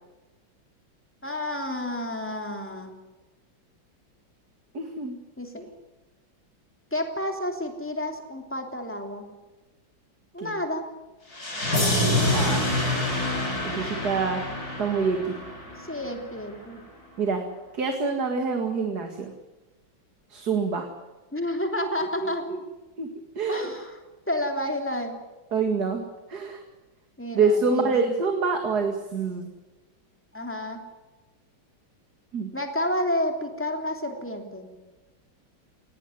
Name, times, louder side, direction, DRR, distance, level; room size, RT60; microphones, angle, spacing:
voice 1, 1.2-3.0 5.4-5.6 6.9-9.3 10.3-10.8 13.8-14.0 15.8-16.8 21.3-22.4 23.5-24.0 24.3-25.2 27.2-27.9 30.3-30.8 32.5-34.7, left 1 dB, 5° left, 3 dB, 3.2 m, -30 dB
voice 2, 4.7-5.2 5.6-5.7 10.4-10.5 12.3-12.7 13.7-14.4 14.8-15.2 17.2-17.4 17.7-19.3 20.3-20.9 22.2-22.6 23.0-23.1 23.4-23.7 25.5-26.0 26.3-26.6 27.3-29.5 32.3-32.5, right 4 dB, 55° right, 4 dB, 2.5 m, -26 dB
sound 1, 11.3-16.3, left 1 dB, 50° left, 7.8 m, -26 dB
20.0 x 18.0 x 9.5 m, 1.1 s
omnidirectional pair, 2.1 m